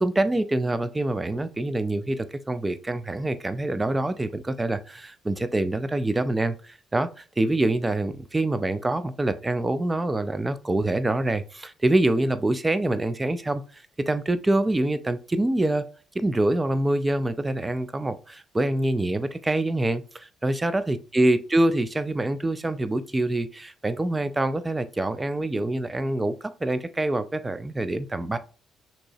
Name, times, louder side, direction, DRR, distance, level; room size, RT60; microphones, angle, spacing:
voice 1, 0.0-15.9 16.1-28.4, right 1 dB, 20° right, 0.5 m, -25 dB
6.1 x 2.9 x 2.7 m
figure-of-eight pair, 45°, 0 cm